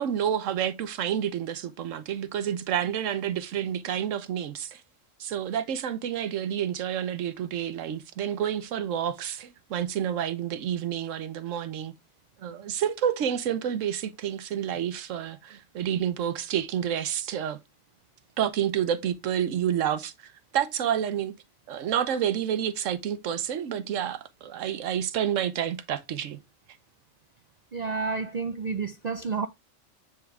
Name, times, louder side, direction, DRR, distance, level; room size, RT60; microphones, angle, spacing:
voice 1, 0.0-4.8 5.2-11.9 12.4-17.6 18.4-20.1 20.5-21.4 21.7-26.4, right 9 dB, 80° right, 1.1 m, -29 dB
voice 2, 27.7-29.5, right 4 dB, 60° right, 0.4 m, -30 dB
9.3 x 3.6 x 3.2 m
omnidirectional pair, 1.3 m